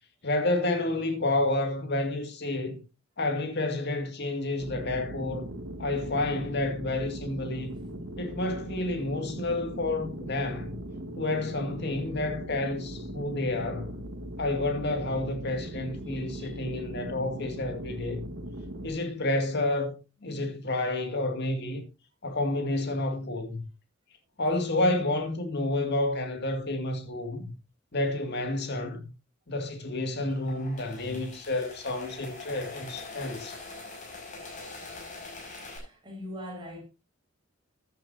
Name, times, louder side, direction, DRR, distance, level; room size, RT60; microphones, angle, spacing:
voice 1, 0.2-2.8 3.2-5.5 5.8-7.7 8.2-10.8 11.2-14.0 14.4-18.3 18.8-19.9 20.2-21.8 22.2-23.6 24.4-27.5 27.9-29.1 29.5-33.6, left 2 dB, 60° left, 2.3 m, -30 dB
sound 1, 4.6-18.9, right 1 dB, 80° right, 1.8 m, -39 dB
voice 2, 16.1-16.6 24.8-25.1 30.2-30.6 35.6-36.8, left 1 dB, 25° right, 6.0 m, -43 dB
sound 2, 30.2-35.8, left 3 dB, 40° left, 6.0 m, -43 dB
14.5 x 10.5 x 2.7 m
head